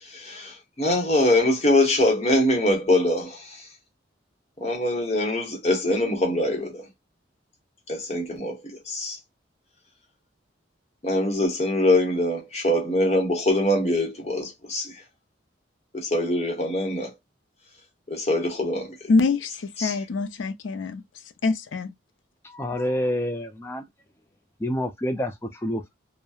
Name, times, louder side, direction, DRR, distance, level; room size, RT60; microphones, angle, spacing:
voice 1, 0.0-3.7 4.6-6.9 7.9-9.2 11.0-15.0 15.9-17.1 18.1-19.0 19.8-20.0, left 1 dB, 35° left, 0.9 m, -23 dB
voice 2, 19.1-21.0 21.4-21.9, left 3 dB, 80° left, 0.4 m, -24 dB
voice 3, 22.4-23.8 24.6-25.9, left 1 dB, 15° left, 0.4 m, -28 dB
2.7 x 2.0 x 2.3 m
head